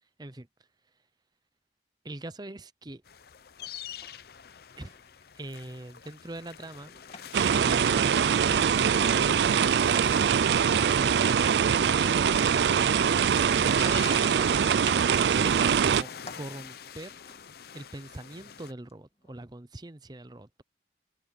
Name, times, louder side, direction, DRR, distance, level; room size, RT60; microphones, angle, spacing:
voice 1, 2.0-3.0 4.8-4.9 5.4-7.0 7.5-10.1 10.9-12.4 13.6-14.6 15.1-17.2 17.7-20.6, right 1 dB, 25° right, 0.7 m, -42 dB
sound 1, 3.0-18.7, left 8 dB, 60° left, 0.6 m, -46 dB
sound 2, 3.6-4.2 4.5-5.2 6.3-8.1 8.5-10.2 10.6-16.4 17.1-17.4 18.9-19.0 19.2-19.3, left 3 dB, 35° left, 2.1 m, -51 dB
sound 3, 7.3-16.0, right 7 dB, 70° right, 0.4 m, -23 dB
head